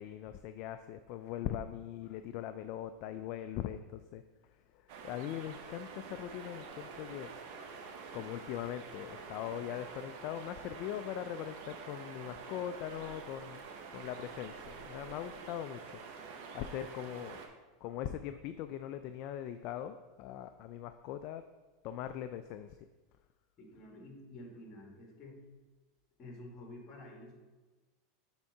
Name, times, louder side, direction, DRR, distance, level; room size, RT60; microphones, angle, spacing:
voice 1, 0.0-4.2 4.7-16.0 16.5-17.5 17.8-21.4 21.8-22.8, left 11 dB, 55° left, 9 dB, 0.3 m, -41 dB
sound 1, 4.9-17.5, right 5 dB, 65° right, 1.0 m, -48 dB
voice 2, 23.6-25.4 26.2-27.3, left 1 dB, 35° left, 1 dB, 1.9 m, -50 dB
7.0 x 3.7 x 5.4 m, 1.3 s
supercardioid pair, 130°, 0 cm